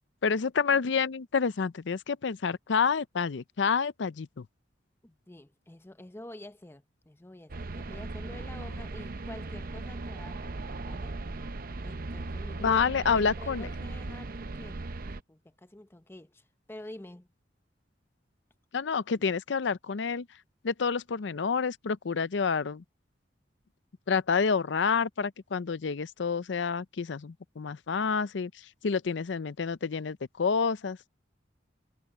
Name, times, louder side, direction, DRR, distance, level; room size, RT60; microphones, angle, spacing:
voice 1, 0.2-4.5 12.6-13.7 18.7-20.3 20.6-22.8 24.1-28.5 28.8-31.1, left 5 dB, 70° left, 0.5 m, -28 dB
voice 2, 5.0-11.1 11.8-12.8 13.1-17.3, left 1 dB, 15° left, 0.8 m, -48 dB
sound 1, 7.5-15.2, right 2 dB, 50° right, 0.7 m, -38 dB
head